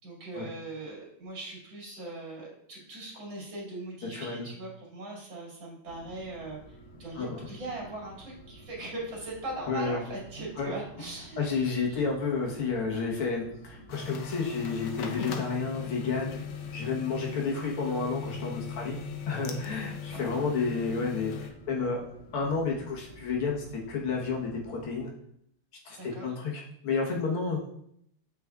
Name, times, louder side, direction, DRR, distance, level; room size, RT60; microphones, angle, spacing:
voice 1, 0.0-12.0 20.1-20.3 26.0-26.3, right 2 dB, 65° right, -5 dB, 3.0 m, -40 dB
voice 2, 4.1-4.5 7.2-7.5 9.7-10.0 10.6-10.7 11.4-16.4 16.7-19.0 19.3-22.0 22.3-25.1 25.9-27.7, left 4 dB, 90° left, -1 dB, 2.2 m, -31 dB
sound 1, 5.8-25.0, right 1 dB, 50° left, 1.8 m, -52 dB
sound 2, 13.9-21.5, left 7 dB, 70° left, 1.1 m, -39 dB
8.2 x 5.0 x 2.4 m, 0.71 s
omnidirectional pair, 2.3 m